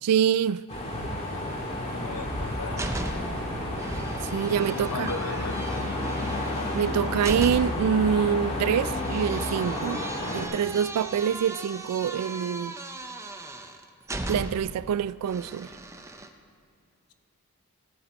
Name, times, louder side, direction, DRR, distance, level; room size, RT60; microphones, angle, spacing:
voice 1, 0.0-0.6 4.3-5.1 6.7-10.0 10.3-12.7 14.3-15.7, right 8 dB, 90° right, 0.3 m, -25 dB
sound 1, 0.7-10.5, left 1 dB, 30° left, 1.8 m, -32 dB
voice 2, 1.8-3.3 4.7-5.9, left 3 dB, 85° left, 0.7 m, -37 dB
sound 2, 2.2-3.5 3.8-7.9 8.9-14.8 15.3-16.3, right 2 dB, 15° right, 0.6 m, -38 dB
sound 3, 5.4-9.4, left 3 dB, 50° left, 0.7 m, -35 dB
14.5 x 9.4 x 4.3 m
head